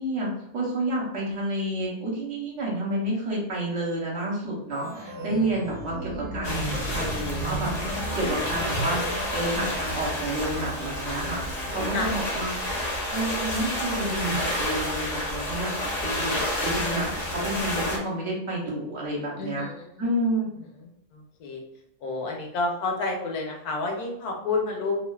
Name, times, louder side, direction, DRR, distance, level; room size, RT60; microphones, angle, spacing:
voice 1, 0.0-11.4 11.7-12.5 13.1-15.7 16.0-19.7 20.0-20.5, right 1 dB, 55° right, -3 dB, 1.2 m, -30 dB
Organ, 4.7-12.1, right 2 dB, 80° right, 1.1 m, -36 dB
sound 1, 6.4-18.0, left 1 dB, 40° left, 0.6 m, -30 dB
voice 2, 19.4-20.1 20.8-21.6 22.0-25.0, left 3 dB, 75° left, 0 dB, 1.2 m, -30 dB
3.1 x 2.4 x 2.3 m, 0.79 s
omnidirectional pair, 1.6 m